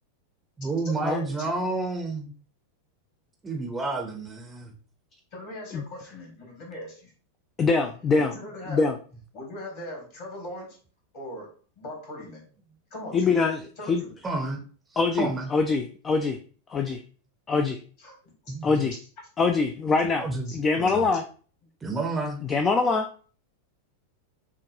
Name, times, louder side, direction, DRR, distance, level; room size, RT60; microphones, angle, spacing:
voice 1, 0.6-2.3 3.4-4.7 14.2-14.6 14.9-15.5 18.5-18.9 20.2-21.1 21.8-22.4, right 3 dB, 15° right, 0.6 m, -30 dB
voice 2, 5.3-7.1 8.2-8.9 9.3-10.8 11.1-11.5 11.8-12.4 12.9-13.4 13.8-14.1 18.0-18.8 20.5-20.6, left 1 dB, 45° left, 1.8 m, -40 dB
voice 3, 7.6-8.3 8.7-8.9 13.1-14.0 15.0-16.4 16.7-17.0 17.5-17.8 18.6-18.9 19.4-20.3 20.5-21.2 22.5-23.1, left 4 dB, 20° left, 0.3 m, -24 dB
6.0 x 2.3 x 2.6 m
figure-of-eight pair, 90°, 0 cm